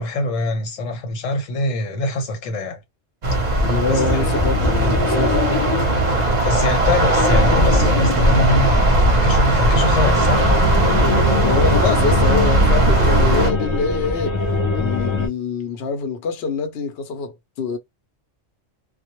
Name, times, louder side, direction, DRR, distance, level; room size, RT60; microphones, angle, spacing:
voice 1, 0.0-2.8 3.5-4.2 6.4-10.5, left 1 dB, 85° left, 1.2 m, -24 dB
sound 1, 3.2-13.5, right 1 dB, 45° right, 0.7 m, -18 dB
voice 2, 3.6-5.4 11.4-14.4 14.7-17.8, left 4 dB, 65° left, 0.8 m, -24 dB
sound 2, 3.9-15.3, left 3 dB, 45° left, 0.3 m, -24 dB
2.2 x 2.0 x 2.9 m
omnidirectional pair, 1.3 m